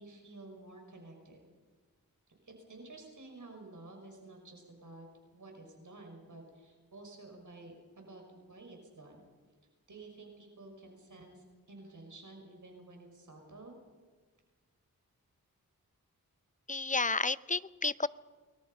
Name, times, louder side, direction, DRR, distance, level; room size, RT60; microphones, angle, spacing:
voice 1, 0.0-1.5 2.3-5.1 5.3-9.3 9.9-13.8, right 2 dB, 60° right, 2 dB, 5.9 m, -52 dB
voice 2, 16.7-18.1, left 3 dB, 20° left, 16 dB, 0.7 m, -31 dB
29.5 x 21.0 x 5.5 m, 1.4 s
cardioid pair, 55°, 35 cm